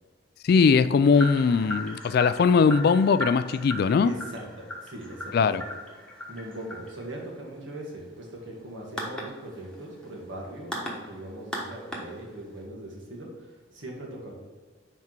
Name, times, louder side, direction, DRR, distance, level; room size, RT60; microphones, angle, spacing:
voice 1, 0.4-4.1 5.3-5.6, left 5 dB, 55° left, 13 dB, 0.3 m, -20 dB
sound 1, 1.1-12.6, equal, 5° left, 1.2 m, -38 dB
voice 2, 4.0-5.6 6.3-14.3, right 1 dB, 75° right, -1 dB, 1.8 m, -40 dB
5.8 x 4.6 x 4.5 m, 1.4 s
head